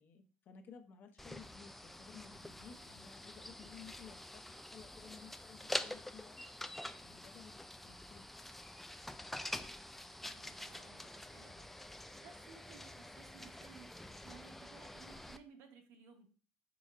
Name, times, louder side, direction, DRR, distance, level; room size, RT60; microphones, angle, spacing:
voice 1, 0.0-6.4 7.0-8.3, left 7 dB, 45° left, 5 dB, 0.8 m, -56 dB
sound 1, 1.2-15.4, left 1 dB, 5° left, 0.3 m, -47 dB
voice 2, 10.2-11.7 12.2-16.3, right 6 dB, 70° right, 5 dB, 1.0 m, -59 dB
5.0 x 4.3 x 2.5 m, 0.40 s
supercardioid pair, 110°, 4 cm